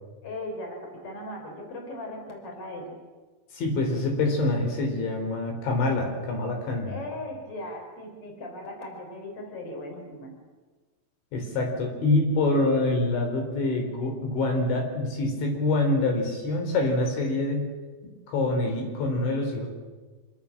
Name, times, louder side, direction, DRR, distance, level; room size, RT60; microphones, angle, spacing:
voice 1, 0.2-3.0 6.9-10.3 17.2-17.4, left 1 dB, 30° left, 2 dB, 6.4 m, -38 dB
voice 2, 3.5-6.9 11.3-17.6 18.3-19.7, left 2 dB, 70° left, 2 dB, 6.5 m, -25 dB
27.5 x 25.0 x 7.5 m, 1.3 s
omnidirectional pair, 5.6 m